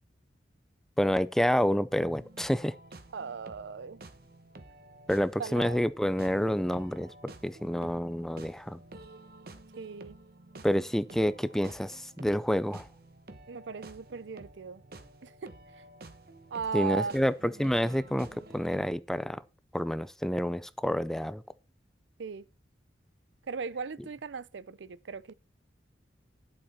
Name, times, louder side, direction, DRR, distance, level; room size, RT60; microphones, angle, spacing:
voice 1, 1.0-2.7 5.1-7.1 7.4-8.8 10.6-12.9 16.7-19.4 19.7-21.4, equal, ahead, 0.4 m, -28 dB
sound 1, 2.1-18.8, right 2 dB, 55° right, 1.2 m, -51 dB
voice 2, 3.1-4.0 5.4-5.8 9.8-10.2 13.5-14.8 15.2-15.5 16.5-17.2 22.2-22.4 23.5-25.3, right 5 dB, 75° right, 0.5 m, -37 dB
11.0 x 7.6 x 4.2 m
head